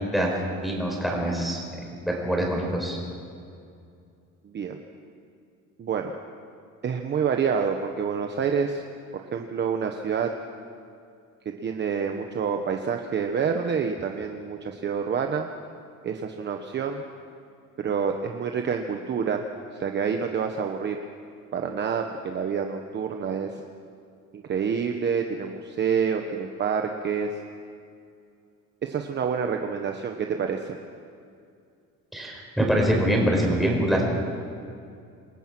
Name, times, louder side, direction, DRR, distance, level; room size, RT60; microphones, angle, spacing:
voice 1, 0.6-1.6 2.0-3.0 32.1-34.0, right 1 dB, ahead, -2 dB, 4.9 m, -24 dB
voice 2, 4.4-4.8 5.8-6.1 6.8-8.8 9.1-10.3 11.4-15.5 16.0-17.0 17.8-19.4 19.7-21.0 21.5-23.6 24.3-27.3 28.8-30.8, right 6 dB, 35° right, 4 dB, 1.1 m, -27 dB
28.0 x 20.0 x 6.1 m, 2.4 s
cardioid pair, 165°, 32 cm